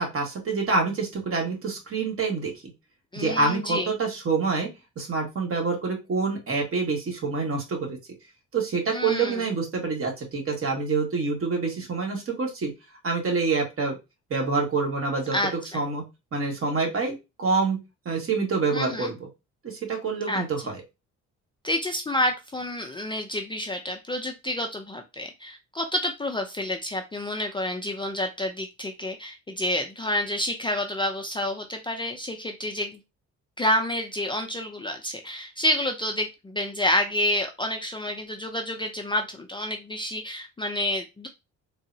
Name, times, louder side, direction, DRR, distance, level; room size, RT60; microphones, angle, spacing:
voice 1, 0.0-2.5 3.2-4.7 5.0-8.0 8.5-12.7 13.0-14.0 14.3-15.4 15.7-16.0 16.3-17.8 18.0-19.2 19.6-20.8, right 4 dB, 45° right, 1 dB, 1.3 m, -26 dB
voice 2, 3.1-3.9 8.9-9.5 15.3-15.8 18.7-19.1 20.3-20.5 21.6-33.0 33.6-41.3, left 1 dB, 15° left, 4 dB, 0.4 m, -29 dB
3.7 x 2.0 x 2.6 m, 0.24 s
cardioid pair, 90°, 30 cm